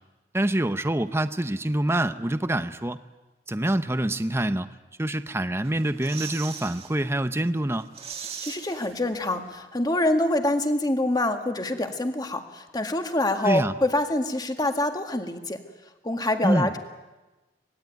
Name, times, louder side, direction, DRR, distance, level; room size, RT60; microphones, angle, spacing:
voice 1, 0.3-3.0 3.5-7.9 13.4-13.7 16.4-16.7, right 1 dB, 15° right, 11 dB, 0.8 m, -26 dB
sound 1, 5.6-6.9 7.3-7.4 7.7-9.5 9.7-9.8, right 7 dB, 35° right, 1.9 m, -39 dB
voice 2, 8.4-15.6 16.0-16.8, left 1 dB, 25° left, 6 dB, 1.9 m, -25 dB
25.5 x 20.0 x 9.3 m, 1.1 s
head